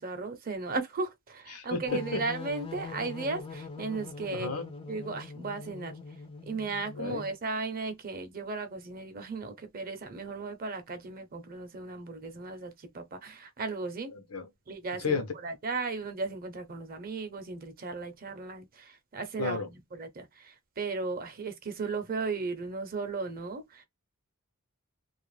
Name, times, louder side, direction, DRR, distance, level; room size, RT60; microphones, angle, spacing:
voice 1, 0.0-4.5 4.9-6.0 6.5-14.1 14.7-23.8, right 4 dB, 40° right, 0.6 m, -36 dB
voice 2, 1.5-2.2 4.3-4.7 7.0-7.2 14.2-14.5 15.0-15.3 19.4-19.7, left 4 dB, 85° left, 0.7 m, -32 dB
sound 1, 1.9-7.4, left 4 dB, 25° left, 0.4 m, -43 dB
2.4 x 2.1 x 3.1 m
head